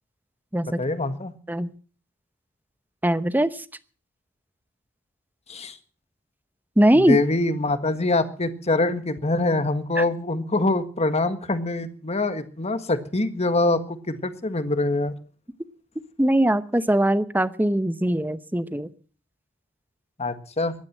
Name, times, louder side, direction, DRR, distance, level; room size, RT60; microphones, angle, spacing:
voice 1, 0.8-1.3 5.5-5.7 7.1-15.1 20.2-20.7, left 2 dB, 30° left, 10 dB, 1.6 m, -24 dB
voice 2, 3.0-3.5 6.8-7.2 10.0-10.1 16.2-18.9, right 1 dB, 10° right, 14 dB, 0.9 m, -21 dB
16.0 x 11.5 x 7.4 m, 0.42 s
head